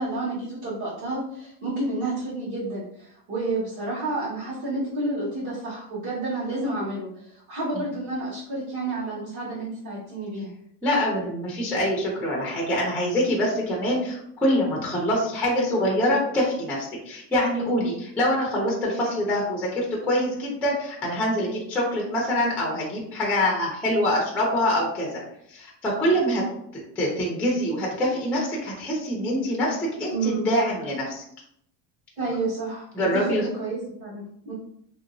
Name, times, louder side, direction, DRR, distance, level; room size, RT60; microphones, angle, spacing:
voice 1, 0.0-10.5 30.1-30.5 32.2-34.5, right 2 dB, 50° right, -11 dB, 1.4 m, -30 dB
voice 2, 10.8-25.2 25.5-26.4 26.7-31.2 32.9-33.4, equal, 5° left, -3 dB, 0.4 m, -25 dB
2.9 x 2.8 x 2.5 m, 0.70 s
cardioid pair, 170°, 39 cm